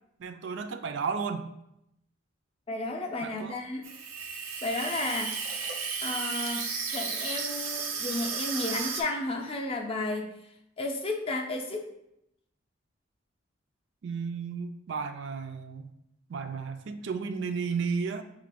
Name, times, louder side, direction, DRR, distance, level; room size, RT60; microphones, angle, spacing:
voice 1, 0.2-1.5 3.2-3.7 14.0-15.9 16.3-18.2, right 5 dB, 60° right, 7 dB, 0.3 m, -33 dB
voice 2, 2.7-3.9 4.6-5.5 6.0-10.3 10.8-11.9, left 2 dB, 30° left, 2 dB, 0.5 m, -33 dB
Water tap faucet / Sink (filling or washing), 3.8-9.0, right 5 dB, 85° right, 0.8 m, -33 dB
5.9 x 2.4 x 3.4 m, 0.81 s
head